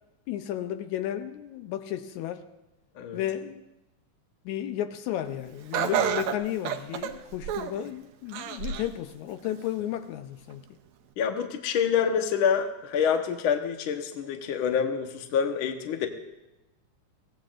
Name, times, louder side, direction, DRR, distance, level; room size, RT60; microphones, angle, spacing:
voice 1, 0.3-2.4 3.1-3.6 4.5-10.6, left 12 dB, 80° left, 2.0 m, -33 dB
Laughter, 5.7-7.8 8.3-9.0 9.4-9.5 10.5-10.6, right 9 dB, 75° right, 1.9 m, -29 dB
voice 2, 11.2-16.1, left 7 dB, 60° left, 1.5 m, -27 dB
23.0 x 17.0 x 2.5 m
omnidirectional pair, 3.4 m